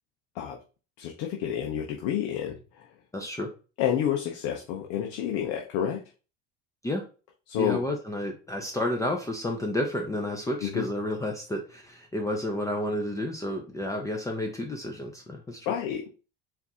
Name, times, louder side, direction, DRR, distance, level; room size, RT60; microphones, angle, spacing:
voice 1, 1.0-2.9 3.8-6.0 7.5-7.8 10.6-10.9 15.7-16.1, left 9 dB, 65° left, 2 dB, 0.8 m, -29 dB
voice 2, 3.1-3.5 6.8-7.0 7.6-15.7, left 1 dB, 10° left, 2 dB, 0.7 m, -31 dB
4.5 x 2.7 x 3.6 m, 0.34 s
supercardioid pair, 110°, 29 cm